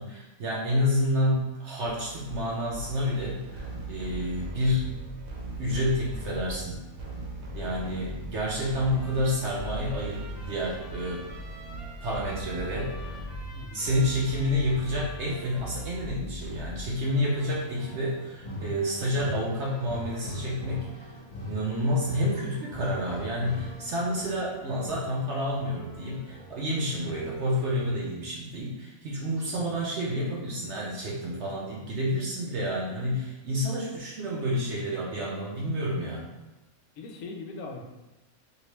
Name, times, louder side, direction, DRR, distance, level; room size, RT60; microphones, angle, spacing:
voice 1, 0.0-5.0 5.6-6.8 7.5-11.2 12.0-13.3 13.7-20.9 21.5-36.3, left 1 dB, 60° right, -4 dB, 0.8 m, -29 dB
sound 1, 1.8-17.3, right 1 dB, 75° right, 1.1 m, -39 dB
Trumpet, 8.4-16.0, right 1 dB, ahead, 0.8 m, -49 dB
voice 2, 13.6-13.9 29.5-29.8 37.0-37.8, left 3 dB, 70° left, 1 dB, 1.0 m, -41 dB
sound 2, 16.7-28.0, equal, 45° left, 1.4 m, -42 dB
2.9 x 2.9 x 3.2 m, 1.0 s
omnidirectional pair, 1.5 m